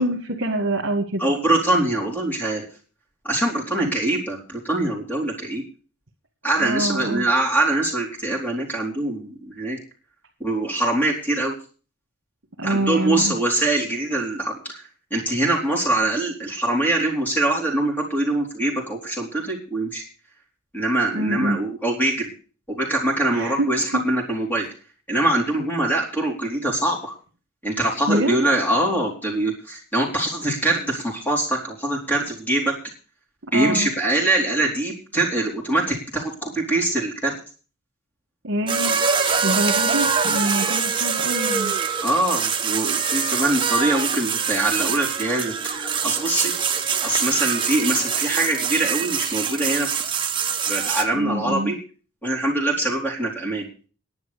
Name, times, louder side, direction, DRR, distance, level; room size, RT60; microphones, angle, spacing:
voice 1, 0.0-1.2 6.6-7.3 12.6-13.3 21.1-21.6 23.3-23.7 23.9-24.0 28.1-28.4 33.5-33.9 38.4-39.0 39.4-41.7 51.1-51.7, right 1 dB, 60° right, 0 dB, 2.0 m, -25 dB
voice 2, 1.2-2.7 3.2-5.6 6.4-9.8 10.4-11.6 12.6-14.8 15.1-20.0 20.7-22.3 22.7-24.7 25.1-27.1 27.6-32.8 33.5-37.3 40.6-40.7 42.0-50.2 50.7-51.8 52.2-53.7, right 2 dB, 10° left, -1 dB, 4.1 m, -23 dB
sound 1, 38.7-51.0, right 6 dB, 20° right, 1.2 m, -24 dB
11.0 x 10.0 x 6.9 m, 0.38 s
head